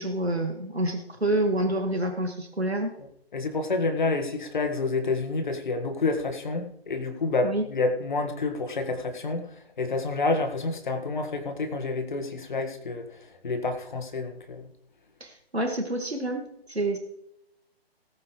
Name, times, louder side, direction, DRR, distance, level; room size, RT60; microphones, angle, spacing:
voice 1, 0.0-2.9 7.4-7.6 15.2-17.0, right 1 dB, 85° right, 4 dB, 2.0 m, -28 dB
voice 2, 3.3-9.5 9.8-13.1 13.4-14.7, left 3 dB, 50° left, 6 dB, 1.8 m, -28 dB
19.0 x 9.5 x 3.2 m, 0.79 s
figure-of-eight pair, 140°, 31 cm